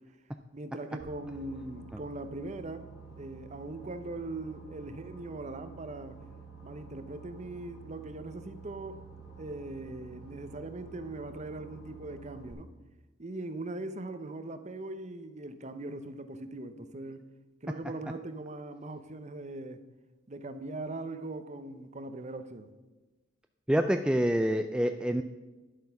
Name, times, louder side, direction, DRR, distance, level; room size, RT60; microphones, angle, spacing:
voice 1, 0.5-2.9 3.2-6.2 6.6-9.0 9.4-12.7 13.2-17.3 17.6-19.8 20.3-22.7, right 2 dB, 35° right, 10 dB, 0.7 m, -40 dB
Boat Water vehicle, 1.0-12.5, right 5 dB, 50° left, 3.6 m, -49 dB
voice 2, 23.7-25.2, equal, 5° right, 7 dB, 0.3 m, -26 dB
11.0 x 7.9 x 5.8 m, 1.2 s
head